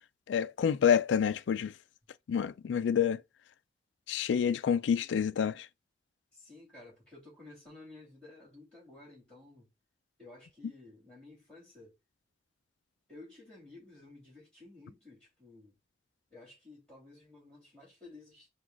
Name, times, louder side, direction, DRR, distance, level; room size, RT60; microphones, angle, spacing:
voice 1, 0.3-1.7 2.3-3.2 4.1-5.7, left 7 dB, 85° left, 0.3 m, -28 dB
voice 2, 6.3-9.7 10.2-11.9 13.1-15.8 16.3-18.5, left 2 dB, 5° left, 2.8 m, -53 dB
4.6 x 2.3 x 3.9 m
head